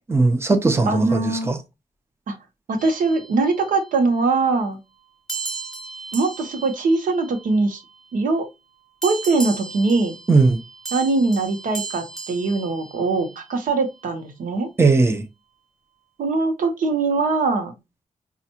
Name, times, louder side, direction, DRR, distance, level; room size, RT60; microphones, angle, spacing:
voice 1, 0.1-1.6 10.3-10.6 14.8-15.2, right 3 dB, 20° right, 0.7 m, -18 dB
voice 2, 0.9-1.5 2.3-2.4 2.7-4.8 6.1-7.8 8.1-8.5 9.0-10.2 10.9-14.7 16.2-17.7, right 3 dB, 85° right, 1.0 m, -22 dB
sound 1, 2.8-4.0 5.3-8.0 9.0-13.5, right 4 dB, 5° left, 1.4 m, -36 dB
5.3 x 2.4 x 2.8 m
wide cardioid pair, 110°, 13 cm